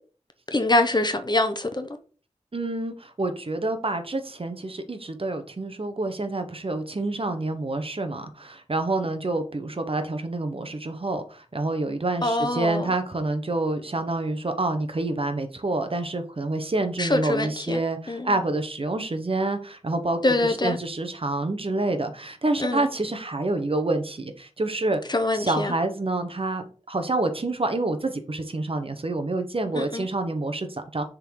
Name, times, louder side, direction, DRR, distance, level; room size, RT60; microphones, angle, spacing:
voice 1, 0.5-1.9 12.2-12.9 17.0-17.8 18.1-18.4 20.2-20.8 22.6-22.9 25.1-25.7 29.7-30.1, left 2 dB, 35° left, 0.9 m, -24 dB
voice 2, 2.5-20.2 20.6-25.0 25.3-31.0, right 2 dB, 45° right, 1.0 m, -27 dB
6.7 x 3.8 x 4.7 m
wide cardioid pair, 70°, 13 cm